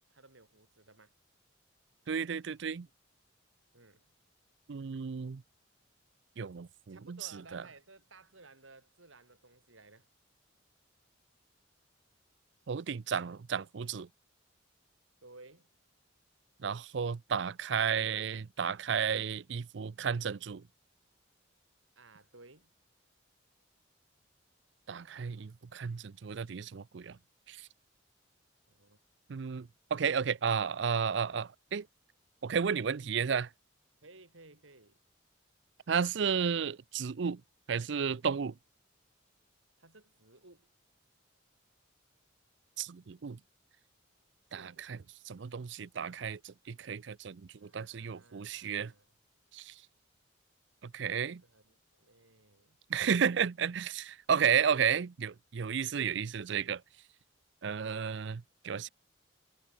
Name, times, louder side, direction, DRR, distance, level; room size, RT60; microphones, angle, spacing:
voice 1, 0.1-1.1 3.7-4.1 6.9-10.1 15.2-15.7 22.0-22.7 28.7-29.0 34.0-35.0 39.8-40.7 44.5-44.8 47.6-49.1 51.1-52.8, right 3 dB, 80° right, 5.5 m, -57 dB
voice 2, 2.1-2.9 4.7-5.4 6.4-7.2 7.5-7.6 12.7-14.1 16.6-20.6 24.9-27.2 27.5-27.6 29.3-31.9 32.4-33.5 35.9-37.4 37.7-38.5 42.8-43.4 44.5-45.0 45.3-48.9 49.5-49.7 50.8-51.4 52.9-56.8 57.6-58.9, right 7 dB, 65° right, 0.5 m, -33 dB
head